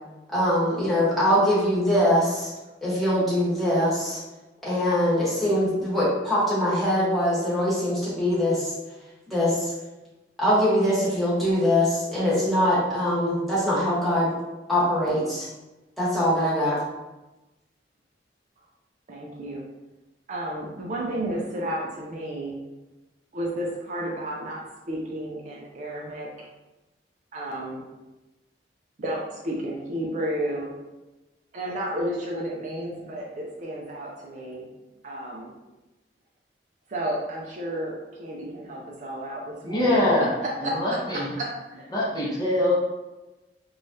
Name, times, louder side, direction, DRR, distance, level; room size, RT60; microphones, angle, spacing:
voice 1, 0.3-2.5 2.8-4.2 4.6-8.7 9.3-9.7 10.4-14.3 14.7-15.5 16.0-16.8, equal, ahead, -10 dB, 1.1 m, -23 dB
voice 2, 19.1-19.6 20.3-22.6 23.3-26.5 27.3-27.8 29.0-30.7 31.5-34.7 35.0-35.5 36.9-40.0 40.4-41.9, right 1 dB, 45° right, -2 dB, 0.4 m, -32 dB
voice 3, 39.6-40.3 40.6-41.3 41.9-42.8, left 1 dB, 25° left, -6 dB, 0.7 m, -23 dB
3.2 x 2.3 x 2.7 m, 1.1 s
head